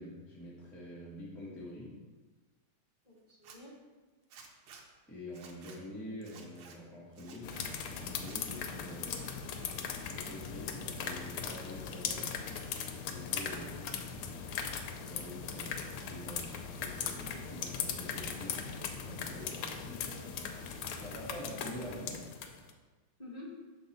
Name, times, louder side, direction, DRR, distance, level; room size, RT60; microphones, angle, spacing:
voice 1, 0.0-2.0 5.1-9.5 9.7-12.4 13.1-13.8 15.0-20.0 20.9-22.3, left 1 dB, ahead, -7 dB, 0.7 m, -46 dB
voice 2, 3.0-3.7 9.0-9.3 13.5-14.0 14.2-14.4 19.8-20.3 23.2-23.5, left 2 dB, 25° left, -9 dB, 1.1 m, -50 dB
Zipper (clothing), 3.3-3.6 4.3-4.8 5.3-5.8 6.2-6.8 7.1-7.7 8.1-8.7 9.0-9.9 10.2-10.8, right 5 dB, 80° right, 1.6 m, -55 dB
sound 1, 7.4-22.7, left 6 dB, 80° left, 1.5 m, -39 dB
6.3 x 3.9 x 4.1 m, 1.3 s
omnidirectional pair, 2.4 m